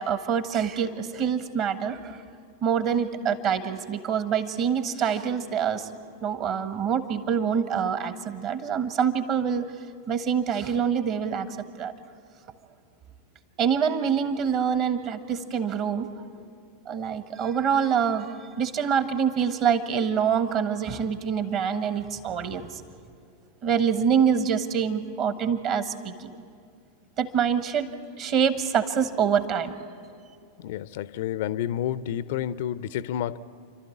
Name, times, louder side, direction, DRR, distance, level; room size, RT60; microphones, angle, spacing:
voice 1, 0.0-2.2 2.6-5.9 6.2-9.7 10.1-11.5 11.8-11.9 13.6-16.1 16.9-22.8 23.6-26.4 27.2-27.9 28.2-29.8, right 7 dB, 35° right, 11 dB, 1.3 m, -25 dB
voice 2, 30.6-33.4, left 11 dB, 55° left, 18 dB, 0.5 m, -30 dB
30.0 x 12.5 x 8.7 m, 2.3 s
figure-of-eight pair, 90°, 0 cm